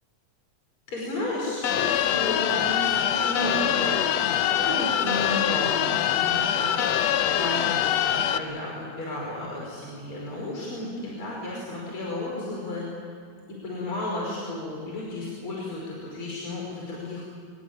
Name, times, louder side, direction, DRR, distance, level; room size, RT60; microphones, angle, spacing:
voice 1, 0.9-6.7 7.3-12.9 13.5-17.2, left 1 dB, 45° left, -4 dB, 6.1 m, -33 dB
sound 1, 1.6-8.4, left 10 dB, 70° left, 1.9 m, -24 dB
24.5 x 22.0 x 9.0 m, 2.2 s
omnidirectional pair, 3.3 m